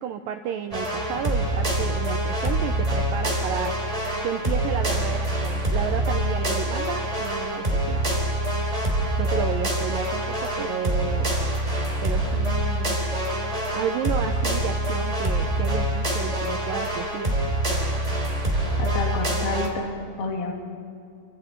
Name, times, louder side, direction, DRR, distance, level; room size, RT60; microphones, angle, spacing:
voice 1, 0.0-3.7 4.2-8.1 9.2-11.3 12.0-13.0 13.7-17.4, right 9 dB, 80° right, 6 dB, 2.1 m, -32 dB
sound 1, 0.7-19.7, right 1 dB, 10° right, 2.8 m, -25 dB
voice 2, 18.8-20.5, left 3 dB, 65° left, 0 dB, 4.4 m, -29 dB
30.0 x 25.0 x 4.5 m, 2.4 s
omnidirectional pair, 4.8 m